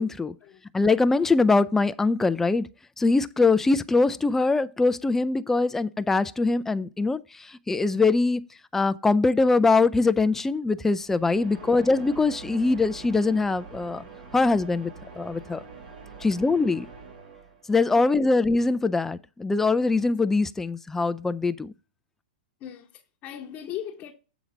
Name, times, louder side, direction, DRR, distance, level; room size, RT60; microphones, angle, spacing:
voice 1, 0.0-0.3 0.7-2.7 3.0-8.4 8.7-14.0 14.3-15.6 16.2-16.9 17.7-21.7, left 3 dB, 5° left, 0.3 m, -23 dB
sound 1, 11.0-17.8, right 4 dB, 70° right, 2.8 m, -45 dB
voice 2, 17.9-18.4 22.6-24.1, left 10 dB, 35° left, 0.9 m, -39 dB
7.2 x 3.9 x 6.2 m
hypercardioid pair, 130°, 5 cm